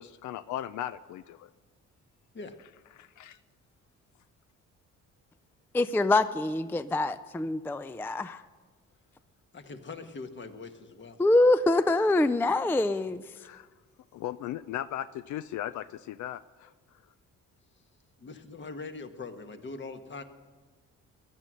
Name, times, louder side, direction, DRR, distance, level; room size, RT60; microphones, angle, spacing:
voice 1, 0.0-1.5 3.0-3.4 13.4-13.7 14.1-16.7, left 12 dB, 70° left, 14 dB, 0.5 m, -37 dB
voice 2, 5.7-8.4 11.2-13.2, left 2 dB, 5° left, 14 dB, 0.3 m, -25 dB
voice 3, 9.5-11.2 18.2-20.2, left 3 dB, 40° left, 7 dB, 1.3 m, -42 dB
16.0 x 11.0 x 6.3 m, 1.4 s
cardioid pair, 90°, 30 cm